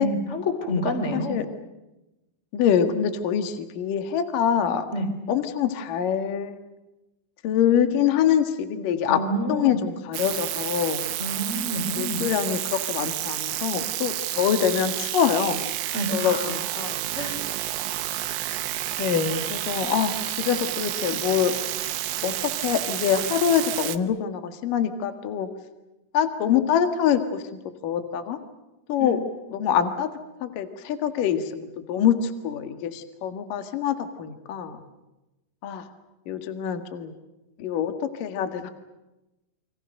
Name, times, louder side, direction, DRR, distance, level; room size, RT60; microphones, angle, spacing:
voice 1, 0.0-1.4 4.9-5.1 9.1-9.8 11.2-12.2 15.9-16.4 17.1-17.4 29.0-29.2, equal, 15° left, 7 dB, 2.8 m, -28 dB
voice 2, 1.1-1.5 2.5-4.9 5.3-6.6 7.4-9.2 9.5-11.1 12.0-15.7 16.1-17.1 19.0-21.6 22.2-25.5 26.1-28.4 28.9-29.2 29.5-30.1 30.4-34.8 35.6-35.9 36.3-37.1 37.6-38.7, left 8 dB, 55° left, 8 dB, 2.6 m, -25 dB
sound 1, 10.1-24.0, right 14 dB, 70° right, 2.9 m, -30 dB
29.5 x 25.5 x 6.6 m, 0.98 s
omnidirectional pair, 5.8 m